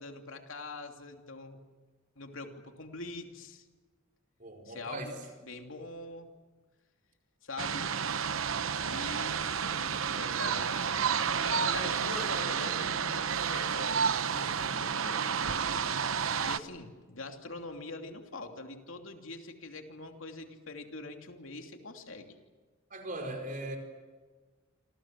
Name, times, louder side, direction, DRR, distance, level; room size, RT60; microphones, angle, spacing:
voice 1, 0.0-1.6 2.2-3.6 4.7-5.2 5.5-6.3 7.4-7.9 8.8-15.6 16.4-22.4, left 3 dB, 75° left, 4 dB, 2.9 m, -44 dB
voice 2, 4.4-5.2 22.9-23.8, right 1 dB, 40° right, 4 dB, 4.8 m, -39 dB
sound 1, 7.6-16.6, right 7 dB, 85° right, 0.9 m, -31 dB
28.0 x 27.0 x 7.5 m, 1.4 s
head